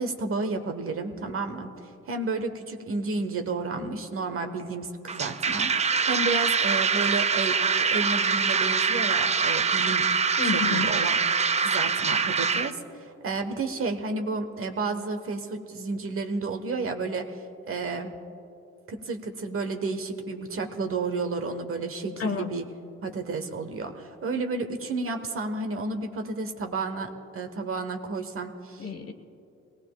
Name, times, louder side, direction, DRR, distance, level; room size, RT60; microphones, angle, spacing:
voice 1, 0.0-10.0 10.4-11.2 11.6-17.4 17.7-18.1 18.9-22.6 23.0-28.9, right 3 dB, 45° right, 6 dB, 1.3 m, -31 dB
sound 1, 5.1-12.7, right 5 dB, 25° right, 0.4 m, -24 dB
voice 2, 10.4-10.9 22.2-22.5 28.8-29.1, left 5 dB, 50° left, 7 dB, 1.3 m, -30 dB
22.5 x 18.0 x 2.4 m, 2.7 s
cardioid pair, 90°, 30 cm